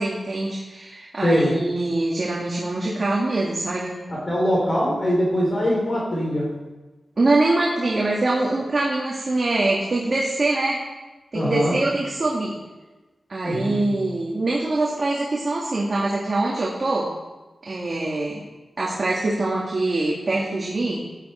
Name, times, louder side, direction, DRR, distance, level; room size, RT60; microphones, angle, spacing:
voice 1, 0.0-4.0 7.2-10.8 11.3-12.6 13.3-17.1 17.7-18.4 18.8-21.1, right 2 dB, 40° right, -4 dB, 1.9 m, -24 dB
voice 2, 1.2-1.5 4.1-6.5 11.3-11.8 13.4-13.9, equal, 40° left, -4 dB, 3.4 m, -22 dB
14.5 x 9.2 x 4.3 m, 1.2 s
wide cardioid pair, 140°, 0 cm